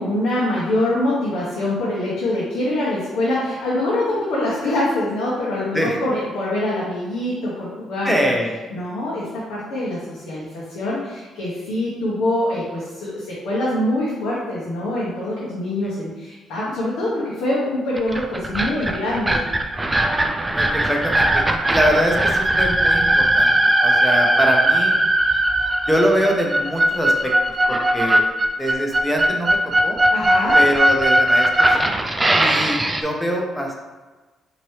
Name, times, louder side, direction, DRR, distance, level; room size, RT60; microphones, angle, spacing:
voice 1, 0.0-8.3 8.7-19.4 30.1-30.6, left 1 dB, 90° left, -7 dB, 1.0 m, -24 dB
voice 2, 8.0-8.5 20.5-25.0 25.9-27.3 27.7-28.2 28.6-30.0 30.5-31.9 32.4-33.7, equal, ahead, 0 dB, 0.8 m, -23 dB
sound 1, 18.0-33.0, right 1 dB, 15° right, 0.4 m, -18 dB
4.4 x 2.9 x 3.2 m, 1.2 s
cardioid pair, 90°, 0 cm